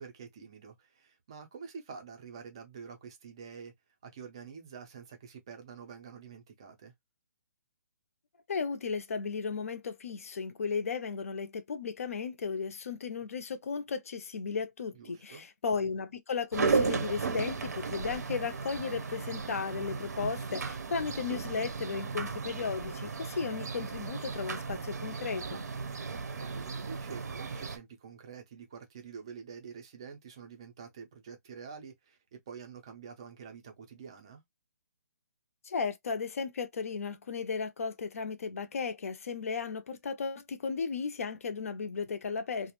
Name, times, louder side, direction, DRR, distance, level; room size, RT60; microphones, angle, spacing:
voice 1, 0.0-3.7 4.0-6.9 14.9-15.4 21.9-22.0 26.1-34.4, right 6 dB, 15° right, 0.4 m, -47 dB
voice 2, 8.5-25.6 35.6-42.7, left 5 dB, 55° left, 0.5 m, -35 dB
sound 1, 16.5-27.8, right 4 dB, 70° right, 0.6 m, -35 dB
2.4 x 2.0 x 2.9 m
hypercardioid pair, 180°, 9 cm